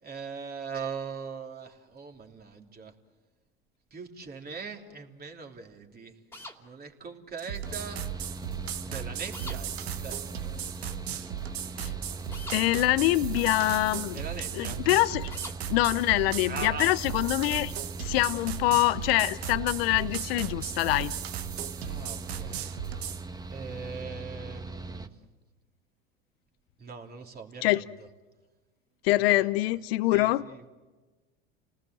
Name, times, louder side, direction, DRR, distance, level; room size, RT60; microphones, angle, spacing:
voice 1, 0.0-2.9 3.9-6.2 6.6-8.0 8.8-10.6 14.1-14.9 16.4-16.9 21.8-22.7 23.5-25.2 26.8-28.1 29.2-29.8 30.1-30.7, right 5 dB, 30° right, 3 dB, 3.2 m, -41 dB
sound 1, 6.3-6.6 9.3-9.6 12.3-12.6 15.3-15.6, left 1 dB, 10° left, 2.9 m, -42 dB
sound 2, 7.4-23.2, right 10 dB, 85° right, 1.1 m, -36 dB
Mechanical fan, 7.6-25.1, right 3 dB, 10° right, 1.3 m, -41 dB
voice 2, 12.5-14.2 14.5-15.4 15.7-17.7 18.0-21.1 27.6-27.8 29.0-30.4, left 18 dB, 75° left, 15 dB, 0.7 m, -25 dB
29.0 x 19.0 x 7.7 m, 1.3 s
hypercardioid pair, 90°, 30 cm